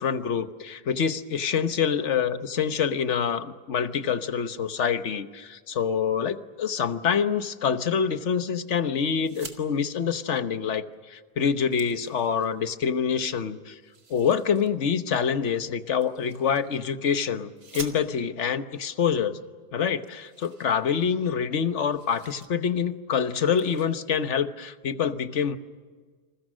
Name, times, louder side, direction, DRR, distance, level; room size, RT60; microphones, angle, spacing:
voice 1, 0.0-13.8 14.1-19.4 19.7-25.6, left 7 dB, 50° left, 10 dB, 1.3 m, -26 dB
sound 1, 9.2-9.6 10.9-11.0 11.3-12.7 13.8-14.7 16.0-16.9 17.6-18.4 19.3-19.4 19.6-19.7 20.0-21.3 21.6-22.5 22.9-23.1 23.4-23.9, right 4 dB, 70° right, 2.7 m, -46 dB
29.5 x 27.0 x 6.3 m, 1.5 s
omnidirectional pair, 1.7 m